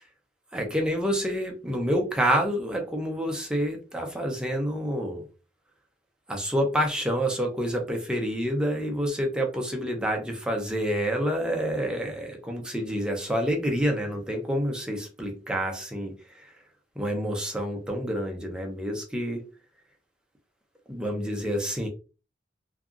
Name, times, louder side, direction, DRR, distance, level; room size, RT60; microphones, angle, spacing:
voice 1, 0.5-5.3 6.3-16.5 17.0-19.5 20.9-21.9, equal, 5° right, 0.5 m, -28 dB
2.8 x 2.3 x 2.4 m
head